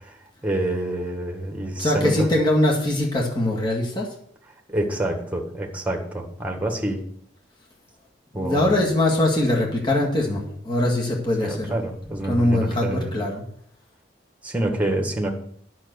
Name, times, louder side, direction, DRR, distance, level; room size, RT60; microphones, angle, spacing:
voice 1, 0.4-2.3 4.7-7.0 8.3-8.8 11.4-13.1 14.4-15.3, right 1 dB, 10° right, 3 dB, 1.7 m, -27 dB
voice 2, 1.8-4.1 8.4-11.8 12.3-13.4, left 1 dB, 25° left, -2 dB, 2.0 m, -22 dB
10.5 x 6.2 x 6.9 m, 0.64 s
head